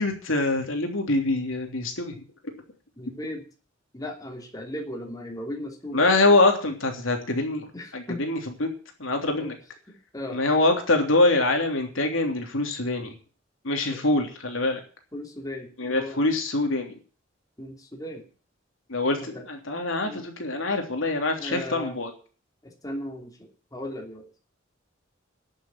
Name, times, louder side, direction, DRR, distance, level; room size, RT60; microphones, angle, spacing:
voice 1, 0.0-2.2 5.9-8.7 9.0-9.5 10.3-13.1 13.6-14.8 15.8-16.9 18.9-22.1, left 2 dB, 85° left, 3 dB, 3.3 m, -24 dB
voice 2, 3.0-3.4 3.9-6.0 7.7-8.2 9.2-9.5 10.1-10.4 13.9-14.0 15.1-16.2 17.6-18.2 19.2-19.4 20.0-20.2 21.4-22.0 22.6-24.3, left 1 dB, 20° left, 1 dB, 3.0 m, -36 dB
11.5 x 7.0 x 9.3 m, 0.39 s
head